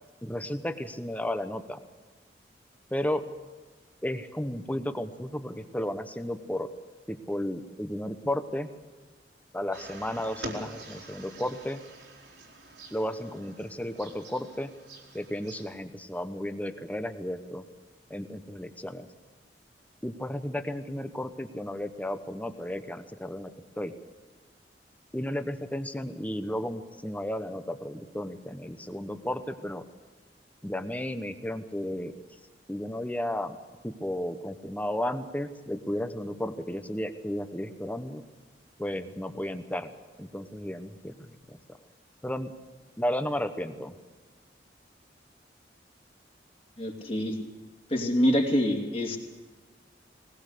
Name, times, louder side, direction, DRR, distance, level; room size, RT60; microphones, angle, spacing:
voice 1, 0.2-1.8 2.9-3.2 4.0-6.7 7.1-8.7 9.5-11.8 12.9-14.7 15.1-17.6 18.1-19.1 20.0-23.5 23.8-23.9 25.1-29.8 30.6-32.1 32.7-33.6 33.8-38.2 38.8-39.9 40.2-41.1 41.5-41.8 42.2-42.5 43.0-43.9, left 1 dB, 10° left, 9 dB, 1.0 m, -33 dB
sound 1, 9.7-15.7, right 2 dB, 80° right, 3.8 m, -45 dB
voice 2, 46.8-47.4 47.9-49.2, equal, 35° left, 1 dB, 2.8 m, -25 dB
20.5 x 19.5 x 6.8 m, 1.3 s
head